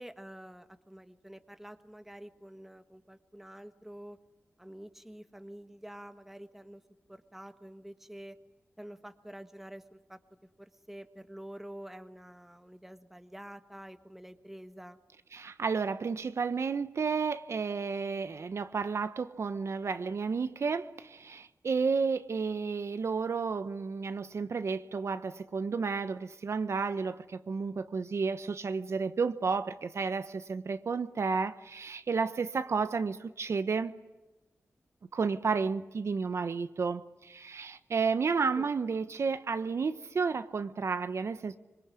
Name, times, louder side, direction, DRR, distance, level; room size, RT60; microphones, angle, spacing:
voice 1, 0.0-4.2 4.6-6.8 7.1-8.4 8.8-10.2 10.6-15.0 38.5-38.7, right 1 dB, 5° right, 1.4 m, -48 dB
voice 2, 15.3-34.0 35.1-41.6, right 5 dB, 60° right, 1.1 m, -32 dB
25.5 x 23.0 x 9.9 m
wide cardioid pair, 125°, 5 cm